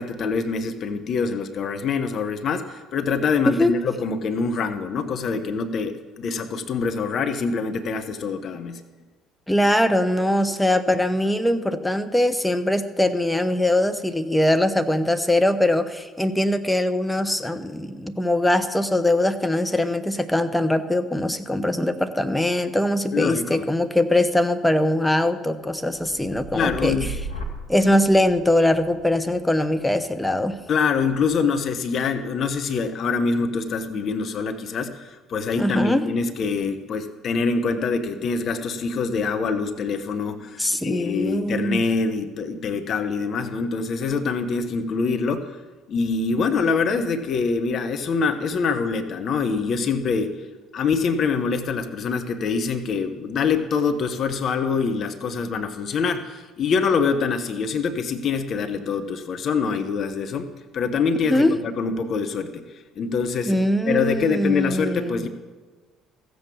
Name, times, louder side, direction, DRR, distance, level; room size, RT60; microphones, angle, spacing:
voice 1, 0.0-8.8 23.1-23.6 26.5-27.1 30.7-45.6 45.9-50.4 50.7-62.6 63.0-63.6 63.9-65.3, left 5 dB, 50° left, 8 dB, 1.0 m, -25 dB
voice 2, 9.5-27.0 27.7-30.6 35.6-36.0 40.6-41.8 61.2-61.5 63.5-65.2, left 1 dB, 5° left, 9 dB, 1.0 m, -22 dB
sound 1, 25.9-33.7 34.2-34.6, right 2 dB, 85° left, 1.9 m, -39 dB
14.5 x 7.8 x 7.0 m, 1.3 s
figure-of-eight pair, 55°, 0 cm